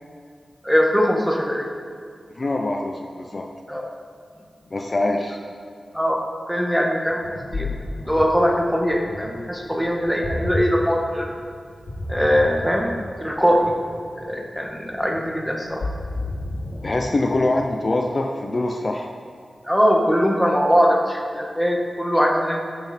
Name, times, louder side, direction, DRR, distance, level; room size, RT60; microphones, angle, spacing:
voice 1, 0.6-1.7 3.7-3.9 5.9-6.2 6.5-7.3 7.5-7.7 8.1-11.3 12.1-12.9 13.2-13.7 14.2-15.8 19.6-22.6, equal, ahead, 0 dB, 1.7 m, -21 dB
voice 2, 2.4-3.5 4.7-5.4 16.8-19.1, left 2 dB, 45° left, 2 dB, 0.7 m, -24 dB
Ocean, 7.1-17.9, left 2 dB, 80° left, 2.7 m, -32 dB
14.0 x 6.0 x 4.5 m, 2.2 s
cardioid pair, 60°, 0 cm